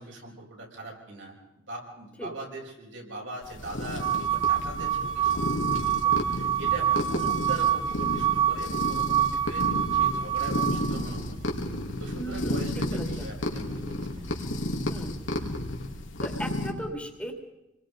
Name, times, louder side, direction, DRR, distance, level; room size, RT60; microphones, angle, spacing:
voice 1, 0.0-1.4 1.7-11.4 12.0-14.3, right 1 dB, 70° right, -1 dB, 6.0 m, -41 dB
sound 1, 3.4-16.7, left 1 dB, 80° left, 3.0 m, -32 dB
sound 2, 4.0-11.0, right 10 dB, 30° right, 1.2 m, -26 dB
voice 2, 12.2-13.3 14.9-15.2 16.2-17.3, equal, 5° left, 3 dB, 2.5 m, -37 dB
28.0 x 21.5 x 5.2 m, 0.91 s
head